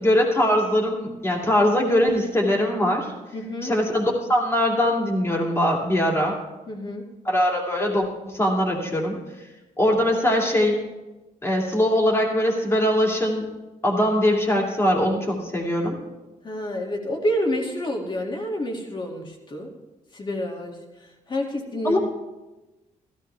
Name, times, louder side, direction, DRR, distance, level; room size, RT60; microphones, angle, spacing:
voice 1, 0.0-3.1 3.6-6.4 7.2-9.2 9.8-10.8 11.4-13.5 13.8-16.0 21.8-22.0, left 1 dB, 20° left, -1 dB, 2.6 m, -21 dB
voice 2, 3.3-3.7 6.7-7.0 16.4-19.7 20.1-22.0, equal, 35° left, 0 dB, 2.2 m, -28 dB
15.5 x 14.0 x 3.4 m, 1.1 s
cardioid pair, 135°, 14 cm